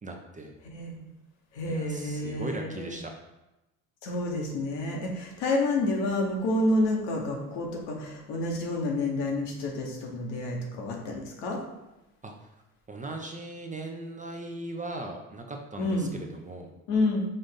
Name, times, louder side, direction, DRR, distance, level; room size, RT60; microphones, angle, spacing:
voice 1, 0.0-0.5 1.7-3.1 12.2-12.3 12.9-16.7, right 2 dB, 20° right, 2 dB, 0.6 m, -38 dB
voice 2, 0.6-1.0 1.5-2.9 4.0-11.6 15.8-16.1 16.9-17.3, left 2 dB, 70° left, 0 dB, 1.2 m, -29 dB
5.3 x 2.5 x 3.7 m, 0.98 s
hypercardioid pair, 75°, 43 cm